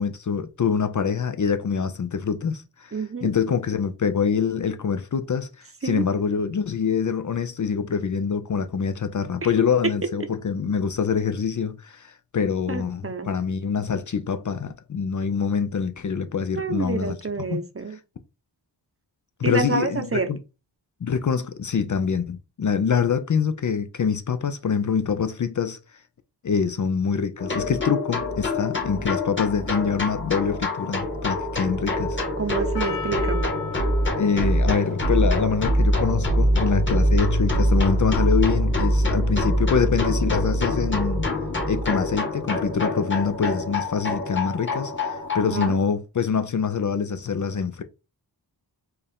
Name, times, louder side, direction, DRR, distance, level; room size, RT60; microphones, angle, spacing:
voice 1, 0.0-17.2 17.5-17.6 19.4-20.4 21.0-25.8 26.4-32.2 34.2-41.3 41.7-47.8, left 6 dB, 45° left, 0.5 m, -25 dB
voice 2, 2.9-3.3 5.8-6.0 12.7-13.3 16.5-18.0 19.4-20.3 32.4-33.5 45.4-45.8, right 4 dB, 30° right, 0.8 m, -28 dB
sound 1, 27.4-45.7, left 1 dB, 25° left, 1.5 m, -24 dB
Percussion, 32.7-37.1 37.7-37.8, left 5 dB, 90° left, 1.4 m, -39 dB
4.5 x 2.5 x 3.5 m
cardioid pair, 60°, 44 cm